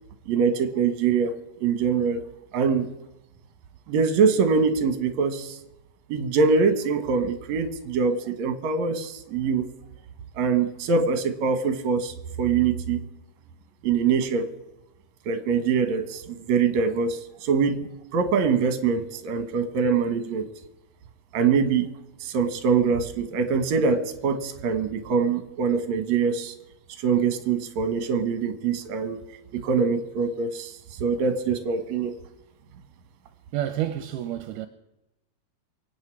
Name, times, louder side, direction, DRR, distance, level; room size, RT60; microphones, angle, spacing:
voice 1, 0.3-1.3 1.6-2.2 2.5-2.9 3.9-5.6 6.1-9.7 10.4-13.0 13.8-14.5 15.3-16.2 16.5-17.8 18.1-20.5 21.3-21.9 22.2-26.5 27.0-29.2 29.5-30.7 31.0-32.1, right 5 dB, 65° right, 2.4 m, -23 dB
voice 2, 33.5-34.7, right 12 dB, 80° right, 2.2 m, -29 dB
24.5 x 8.9 x 4.7 m
omnidirectional pair, 3.8 m